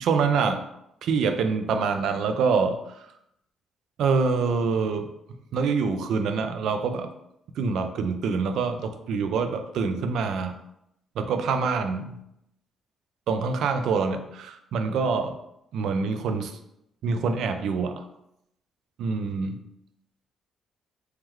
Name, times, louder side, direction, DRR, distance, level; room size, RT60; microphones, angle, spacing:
voice 1, 0.0-0.6 1.0-2.8 4.0-5.1 5.5-7.1 7.6-10.5 11.2-12.2 13.3-15.3 15.7-16.5 17.0-18.0 19.0-19.6, right 5 dB, 75° right, 7 dB, 0.4 m, -25 dB
3.1 x 3.1 x 3.6 m, 0.81 s
cardioid pair, 90°, 0 cm